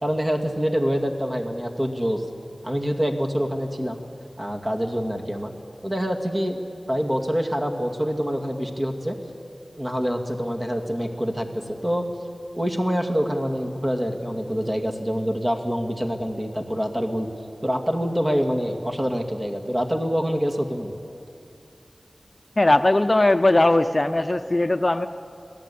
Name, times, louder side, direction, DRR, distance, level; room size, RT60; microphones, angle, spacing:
voice 1, 0.0-2.2 2.6-4.0 4.4-5.5 5.8-6.6 6.9-9.2 9.8-12.1 12.6-17.3 17.6-20.9, equal, 25° right, 2 dB, 2.3 m, -25 dB
voice 2, 22.6-25.1, left 2 dB, 35° left, 9 dB, 0.6 m, -19 dB
27.0 x 17.0 x 8.6 m, 2.6 s
wide cardioid pair, 60°, 0 cm